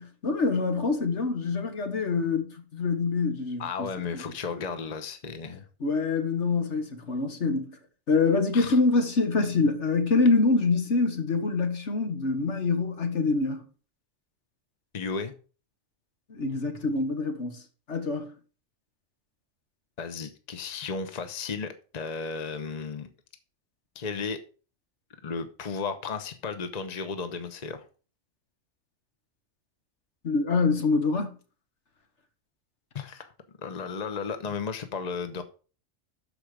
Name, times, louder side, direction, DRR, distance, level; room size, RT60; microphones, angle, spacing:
voice 1, 0.0-4.2 5.8-7.8 8.1-13.6 16.3-17.6 17.9-18.3 30.2-31.3, left 3 dB, 75° left, 1.8 m, -25 dB
voice 2, 3.6-5.6 8.5-8.8 14.9-15.3 20.0-23.1 23.9-24.4 25.2-27.9 32.9-33.3 33.6-35.4, left 5 dB, 40° left, 1.0 m, -34 dB
12.5 x 5.0 x 5.0 m
omnidirectional pair, 1.2 m